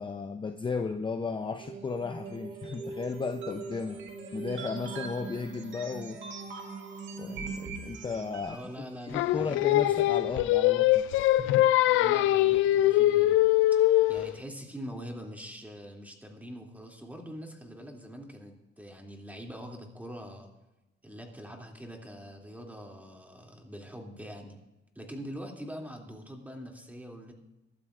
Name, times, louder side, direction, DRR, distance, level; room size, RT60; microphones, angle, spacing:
voice 1, 0.0-4.0 4.3-6.2 7.2-8.7 9.1-11.7, left 4 dB, 25° left, 7 dB, 0.7 m, -35 dB
sound 1, 1.6-8.7, right 5 dB, 70° right, 2.0 m, -41 dB
voice 2, 8.4-10.2 11.7-13.3 13.7-13.8 14.1-20.5 21.0-24.6 24.9-27.3, equal, 10° right, 1 dB, 2.7 m, -43 dB
Singing, 9.1-14.3, left 15 dB, 85° left, 0.5 m, -23 dB
23.5 x 12.5 x 2.5 m, 0.98 s
cardioid pair, 90°, 20 cm